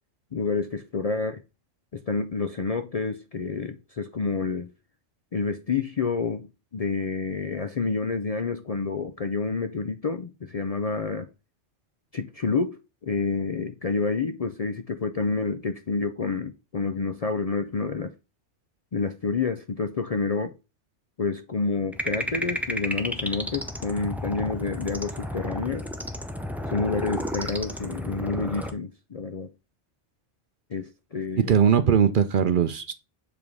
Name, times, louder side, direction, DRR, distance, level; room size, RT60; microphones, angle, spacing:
voice 1, 0.3-1.4 1.9-4.7 5.3-6.5 6.7-11.3 12.1-18.1 18.9-20.5 21.2-25.8 26.7-29.5 30.7-31.5, left 4 dB, 50° left, 0.5 m, -28 dB
sound 1, 21.9-28.7, equal, ahead, 0.6 m, -32 dB
voice 2, 31.4-32.9, right 8 dB, 55° right, 0.7 m, -20 dB
7.2 x 3.6 x 4.6 m
omnidirectional pair, 1.2 m